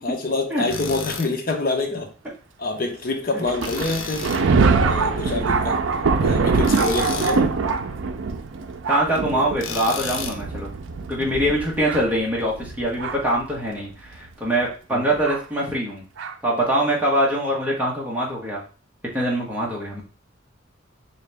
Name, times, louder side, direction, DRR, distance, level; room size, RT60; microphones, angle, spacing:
voice 1, 0.0-2.1 2.6-4.3 4.7-5.8 6.2-7.5 9.3-9.5 14.9-15.2, left 2 dB, 45° left, 0.7 m, -26 dB
Tools, 0.7-1.3 3.6-4.5 6.6-7.4 9.6-10.4, left 6 dB, 90° left, 0.6 m, -32 dB
Thunder, 3.5-13.4 14.1-14.2 15.3-15.4 16.2-16.3, right 4 dB, 80° right, 0.4 m, -23 dB
voice 2, 8.9-10.7 11.1-16.0 16.4-18.6 19.1-20.0, right 1 dB, 10° right, 1.0 m, -23 dB
3.8 x 2.8 x 3.3 m
head